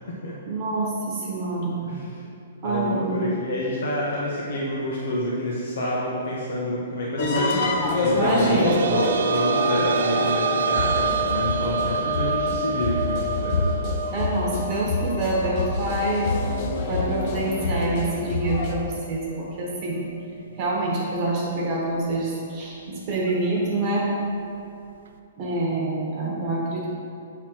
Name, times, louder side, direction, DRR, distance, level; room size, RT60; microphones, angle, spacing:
voice 1, 0.5-1.8 2.6-3.3 8.2-8.8 14.1-16.3 16.9-20.1 20.6-24.1 25.4-26.9, right 2 dB, 30° right, -4 dB, 1.1 m, -26 dB
voice 2, 1.8-2.2 2.6-13.7, left 1 dB, 70° left, -5 dB, 1.2 m, -28 dB
sound 1, 7.2-18.7, left 3 dB, 35° left, 0.7 m, -27 dB
sound 2, 8.0-19.5 19.8-19.9 21.5-21.6, right 3 dB, 70° right, 0.5 m, -28 dB
7.8 x 3.9 x 4.5 m, 2.6 s
hypercardioid pair, 165°, 0 cm